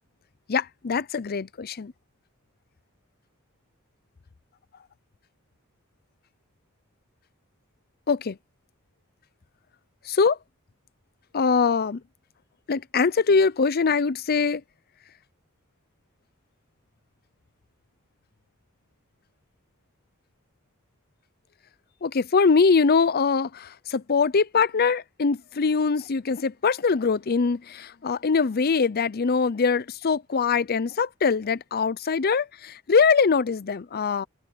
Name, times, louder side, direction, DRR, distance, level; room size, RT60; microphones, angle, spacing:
voice 1, 0.5-1.9 8.1-8.4 10.1-10.4 11.3-12.0 12.7-14.6 22.0-34.2, left 5 dB, 45° left, 0.6 m, -23 dB
open air
head